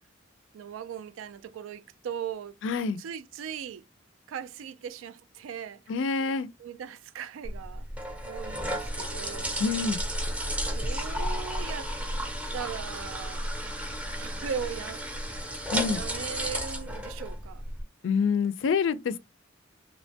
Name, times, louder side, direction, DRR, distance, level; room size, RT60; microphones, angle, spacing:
voice 1, 0.5-2.5 3.0-3.8 4.3-5.8 6.6-7.9 8.2-9.6 10.7-11.9 12.5-13.4 14.2-17.6, right 8 dB, 85° right, 0.3 m, -39 dB
voice 2, 2.6-3.0 5.9-6.5 9.6-10.0 15.7-16.0 18.0-19.2, left 5 dB, 65° left, 0.3 m, -26 dB
sound 1, 7.4-17.8, equal, 5° right, 0.6 m, -33 dB
2.9 x 2.1 x 2.6 m
head